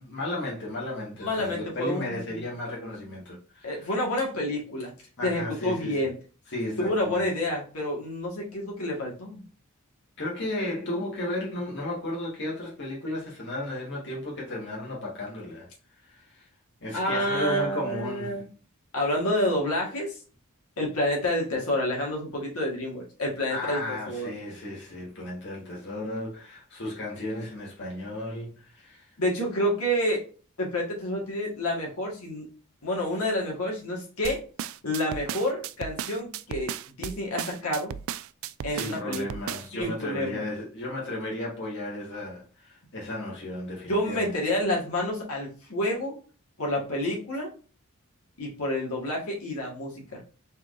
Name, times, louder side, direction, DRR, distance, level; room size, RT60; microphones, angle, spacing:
voice 1, 0.0-3.9 5.2-6.0 6.5-7.3 10.2-15.7 16.1-16.5 16.8-18.3 23.5-29.0 38.7-44.3, left 1 dB, 55° left, 1.6 m, -34 dB
voice 2, 1.2-2.4 3.6-4.9 5.2-6.1 6.8-9.4 16.9-18.5 18.9-20.2 20.8-24.3 29.2-30.2 30.6-32.5 32.8-34.4 34.8-37.9 38.6-40.4 43.9-46.1 46.6-47.5 48.4-50.2, left 1 dB, 80° left, 1.8 m, -29 dB
sound 1, 34.2-39.8, right 9 dB, 65° right, 0.3 m, -35 dB
4.2 x 3.6 x 2.5 m
head